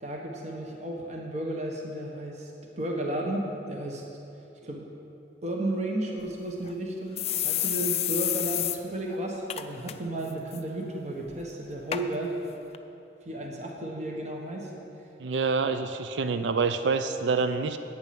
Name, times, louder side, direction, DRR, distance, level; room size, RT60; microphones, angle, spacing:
voice 1, 0.0-2.5 2.8-4.0 4.6-4.9 5.4-12.3 13.2-14.7, right 1 dB, 40° right, 0 dB, 1.2 m, -33 dB
sound 1, 6.2-6.3 6.6-6.7 7.2-8.8 9.1-9.2 9.5-9.9 10.3-10.6 11.3-11.4 11.9-12.0 12.7-12.8, left 12 dB, 35° left, 0.4 m, -29 dB
voice 2, 15.2-17.8, right 4 dB, 85° right, 10 dB, 0.5 m, -27 dB
10.5 x 8.9 x 5.9 m, 2.8 s
head